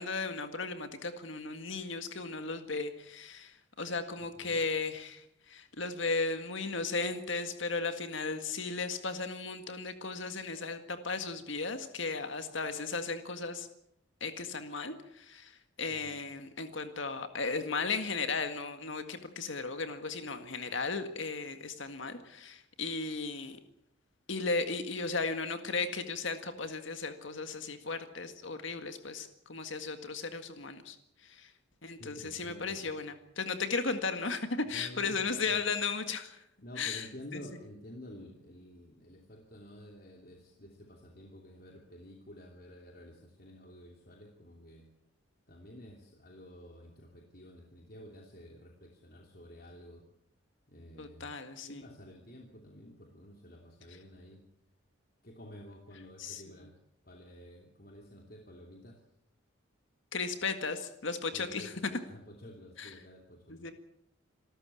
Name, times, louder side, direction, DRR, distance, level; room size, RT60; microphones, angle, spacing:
voice 1, 0.0-13.7 14.2-23.6 24.3-31.0 31.2-31.5 31.8-36.4 36.8-37.4 51.0-51.8 56.2-56.4 60.1-61.7 62.8-62.9 63.5-63.7, left 4 dB, 70° left, 8 dB, 1.9 m, -36 dB
voice 2, 4.2-4.6 15.9-16.2 32.0-32.9 34.7-35.2 35.5-35.6 36.6-44.9 45.5-50.0 50.7-51.3 51.6-54.4 55.2-56.7 57.0-59.0 61.3-63.7, equal, 45° left, 1 dB, 2.9 m, -51 dB
27.5 x 13.5 x 8.5 m, 0.77 s
head